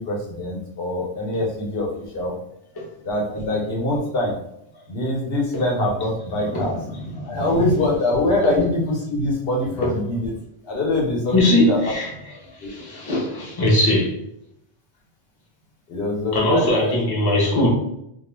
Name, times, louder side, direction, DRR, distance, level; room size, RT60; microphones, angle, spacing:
voice 1, 0.0-2.3 3.0-4.4 4.9-6.8 7.3-10.3 10.6-11.9 12.6-12.7 15.9-16.9, left 1 dB, 65° left, -2 dB, 0.9 m, -23 dB
voice 2, 6.3-7.4 9.8-9.9 11.3-14.1 16.3-17.7, left 1 dB, 25° left, -3 dB, 0.6 m, -21 dB
2.3 x 2.2 x 3.1 m, 0.76 s
omnidirectional pair, 1.1 m